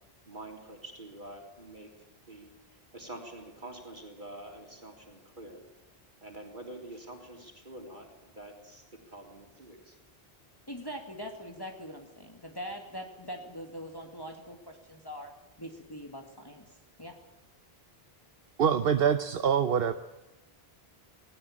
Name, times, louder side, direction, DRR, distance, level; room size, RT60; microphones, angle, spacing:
voice 1, 0.3-5.6 6.2-10.0, right 1 dB, 50° right, 2 dB, 3.8 m, -47 dB
voice 2, 10.7-15.3 15.6-16.6 17.0-17.2, equal, 20° left, 2 dB, 2.2 m, -42 dB
voice 3, 18.6-19.9, right 7 dB, 70° right, 10 dB, 1.1 m, -25 dB
19.0 x 18.5 x 8.6 m, 1.0 s
omnidirectional pair, 1.0 m